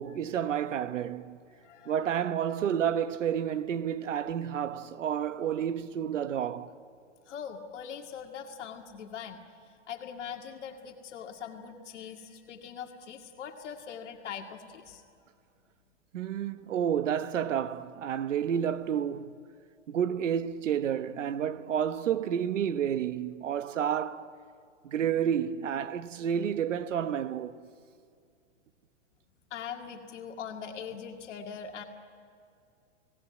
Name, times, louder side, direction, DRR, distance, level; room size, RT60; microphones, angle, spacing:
voice 1, 0.0-1.4 1.9-6.7 16.1-19.4 19.9-24.3 24.8-27.7, right 9 dB, 85° right, 1.2 m, -30 dB
voice 2, 1.5-2.1 7.3-15.0 29.5-31.8, left 7 dB, 70° left, 2.2 m, -42 dB
29.5 x 18.0 x 9.6 m
hypercardioid pair, 125°, 36 cm